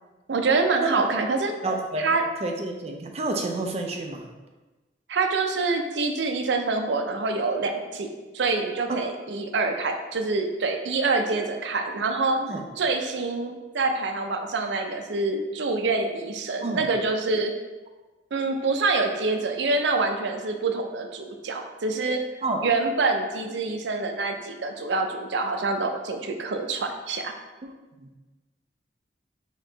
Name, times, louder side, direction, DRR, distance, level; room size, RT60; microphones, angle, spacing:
voice 1, 0.3-1.5 2.0-2.2 5.1-8.1 8.3-12.4 12.8-17.5 18.3-22.2 22.6-27.3, right 3 dB, 85° right, 5 dB, 0.5 m, -26 dB
voice 2, 1.6-2.1 2.4-4.3 8.9-9.0 12.4-12.6 16.6-16.8 22.4-22.6 27.6-28.1, right 2 dB, 35° right, 3 dB, 0.5 m, -29 dB
4.3 x 3.0 x 3.8 m, 1.2 s
head